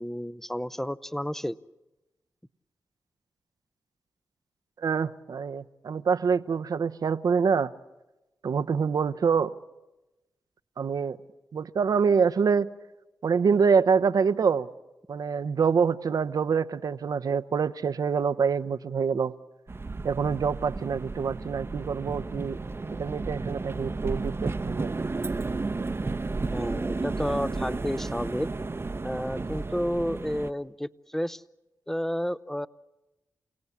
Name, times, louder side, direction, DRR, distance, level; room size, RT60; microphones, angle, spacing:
voice 1, 0.0-1.6 26.5-28.5 29.0-31.4 31.9-32.7, equal, 5° left, 17 dB, 0.8 m, -31 dB
voice 2, 4.8-7.7 8.4-9.5 10.8-11.2 11.5-12.7 13.2-14.7 15.1-19.3 20.0-22.6 23.0-25.1, right 6 dB, 65° right, 11 dB, 0.8 m, -25 dB
sound 1, 19.7-30.5, right 3 dB, 35° right, 0.9 m, -32 dB
29.0 x 17.5 x 8.4 m, 1.0 s
supercardioid pair, 40°, 7 cm